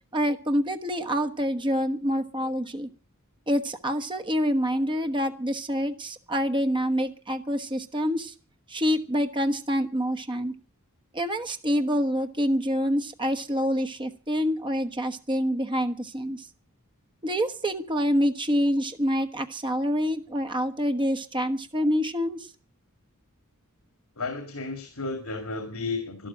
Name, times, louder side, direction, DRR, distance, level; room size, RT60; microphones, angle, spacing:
voice 1, 0.1-2.9 3.5-8.3 8.7-10.5 11.1-16.4 17.2-22.5, equal, 20° right, 7 dB, 1.2 m, -26 dB
voice 2, 24.2-26.3, left 3 dB, 70° left, 7 dB, 2.7 m, -33 dB
12.5 x 12.0 x 8.8 m, 0.40 s
head